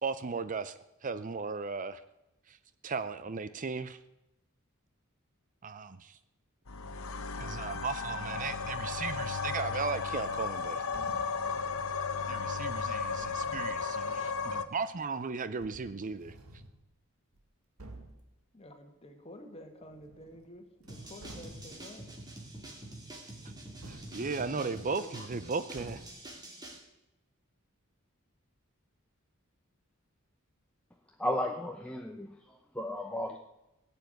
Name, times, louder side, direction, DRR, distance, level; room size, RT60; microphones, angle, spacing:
voice 1, 0.0-0.7 1.0-2.0 2.5-2.6 2.8-4.0 5.6-6.2 7.4-10.8 12.3-16.3 23.8-26.0, right 4 dB, 40° right, 13 dB, 0.6 m, -36 dB
sound 1, 6.7-14.7, left 5 dB, 70° left, 1.0 m, -34 dB
sound 2, 10.9-11.5 13.2-13.8 15.0-15.1 15.6-16.8 17.3-17.4 17.8-18.3 19.8-20.5 20.8-21.9 23.8-24.8 25.8-26.3, right 1 dB, 90° right, 2.0 m, -51 dB
voice 2, 18.5-22.2 24.4-25.3, left 1 dB, 30° left, 5 dB, 2.0 m, -50 dB
sound 3, 20.9-26.8, right 1 dB, 20° right, 2.7 m, -46 dB
voice 3, 31.2-33.4, left 1 dB, 5° left, 2 dB, 0.8 m, -34 dB
17.5 x 7.2 x 9.2 m, 0.93 s
head